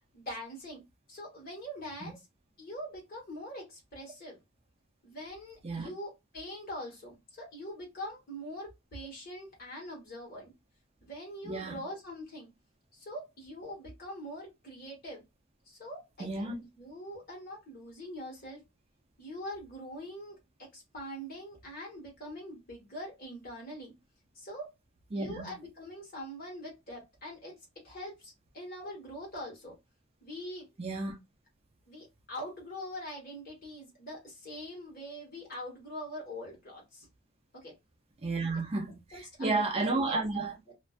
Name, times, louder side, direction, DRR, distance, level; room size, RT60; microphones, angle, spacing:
voice 1, 0.1-0.8 1.1-2.3 2.6-4.4 5.0-10.5 11.0-12.5 12.9-15.2 15.7-18.6 19.2-20.4 20.7-23.9 24.3-24.7 25.1-27.5 27.8-29.8 30.2-30.7 31.9-37.1 37.5-37.7 39.1-40.3 40.7-40.8, equal, 40° left, 1.3 m, -43 dB
voice 2, 11.5-11.8 16.2-16.6 25.1-25.5 30.8-31.2 38.2-40.6, right 3 dB, 25° right, 0.3 m, -32 dB
2.4 x 2.2 x 2.3 m
head